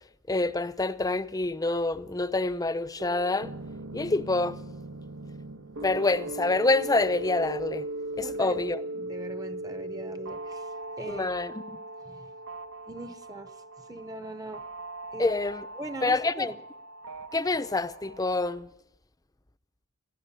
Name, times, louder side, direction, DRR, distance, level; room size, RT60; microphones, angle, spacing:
voice 1, 0.3-3.5 3.9-4.6 5.8-7.8 8.2-8.8 11.1-11.6 15.2-15.6 16.0-16.5 17.3-18.7, left 2 dB, 20° left, 0.7 m, -27 dB
sound 1, 3.0-18.5, right 2 dB, 80° right, 1.3 m, -39 dB
voice 2, 8.2-8.6 9.0-10.7 11.0-11.6 12.0-12.3 12.9-13.5 13.9-14.6 15.1-15.3 15.7-16.6, right 1 dB, 20° right, 0.9 m, -40 dB
20.5 x 14.5 x 9.9 m
head